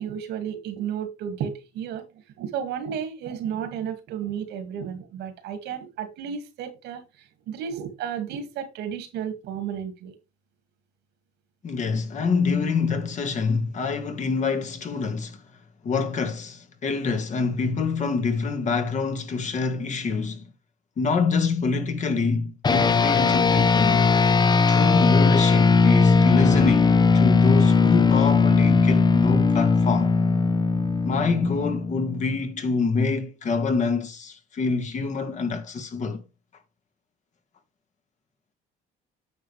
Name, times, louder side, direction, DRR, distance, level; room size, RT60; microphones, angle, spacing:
voice 1, 0.0-2.0 2.4-7.0 7.5-10.1, right 8 dB, 80° right, 2.2 m, -32 dB
voice 2, 11.6-15.4 15.8-20.5 21.0-24.1 24.7-30.2 31.1-36.2, left 4 dB, 45° left, 1.9 m, -26 dB
sound 1, 22.6-32.4, left 4 dB, 25° left, 0.9 m, -19 dB
9.3 x 6.9 x 3.3 m
cardioid pair, 110°, 17 cm